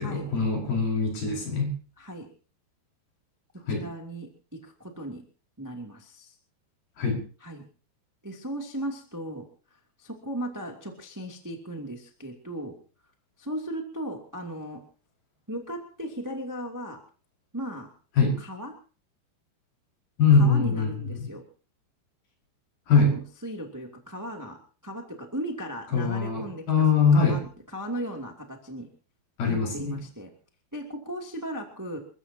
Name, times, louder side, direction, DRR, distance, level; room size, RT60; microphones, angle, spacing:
voice 1, 0.0-1.7 3.7-3.8 7.0-7.2 18.2-18.4 20.2-20.9 22.9-23.2 25.9-27.4 29.4-29.9, left 4 dB, 55° left, -1 dB, 6.9 m, -22 dB
voice 2, 3.7-5.2 5.6-6.3 7.4-7.6 8.2-9.5 10.0-12.7 13.4-14.8 15.5-17.0 17.5-17.9 18.4-18.7 20.3-21.4 23.0-24.6 24.8-28.9 29.5-30.3 30.7-32.0, right 1 dB, 10° right, 2 dB, 1.2 m, -36 dB
29.0 x 14.5 x 2.8 m, 0.39 s
omnidirectional pair, 5.1 m